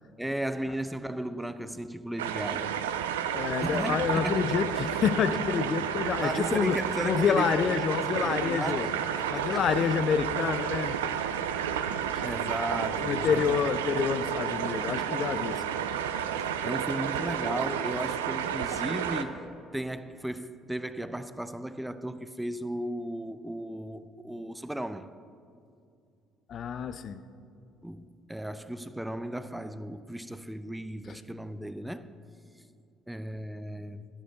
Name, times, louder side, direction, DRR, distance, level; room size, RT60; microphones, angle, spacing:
voice 1, 0.2-2.8 3.6-4.6 6.2-8.9 9.3-9.8 12.2-13.6 16.6-25.1 27.8-32.1 33.1-34.0, right 1 dB, 5° right, 0.5 m, -35 dB
sound 1, 2.2-19.2, right 8 dB, 80° right, 0.4 m, -31 dB
voice 2, 3.3-6.8 7.0-8.9 9.3-11.0 12.1-12.2 13.0-15.6 26.5-27.2, left 7 dB, 50° left, 0.4 m, -28 dB
11.0 x 10.0 x 3.9 m
hypercardioid pair, 55°, 0 cm